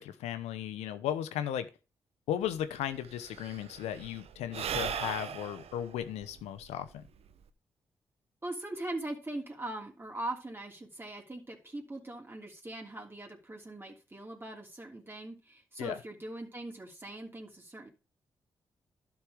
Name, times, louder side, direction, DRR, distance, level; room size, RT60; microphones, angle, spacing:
voice 1, 0.0-1.7 2.3-7.0 15.8-16.0, left 10 dB, 80° left, 0.9 m, -36 dB
Sigh / Breathing, 2.5-2.6 2.8-7.5, right 8 dB, 70° right, 0.9 m, -39 dB
voice 2, 8.4-17.9, right 1 dB, 20° right, 3.1 m, -41 dB
11.0 x 6.1 x 5.0 m
hypercardioid pair, 40°, 11 cm